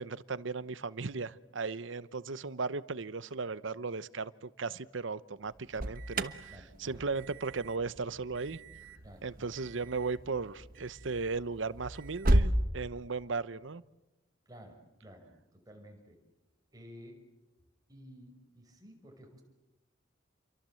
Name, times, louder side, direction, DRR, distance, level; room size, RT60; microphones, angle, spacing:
voice 1, 0.0-8.6 9.2-13.8, right 4 dB, 75° right, 17 dB, 0.8 m, -36 dB
Alarm, 5.4-12.6, right 1 dB, 50° right, 1.3 m, -34 dB
voice 2, 6.5-7.0 9.0-9.5 14.5-16.2 16.7-17.2 17.9-19.4, equal, 20° right, 2 dB, 5.6 m, -53 dB
29.5 x 23.5 x 7.8 m, 1.0 s
head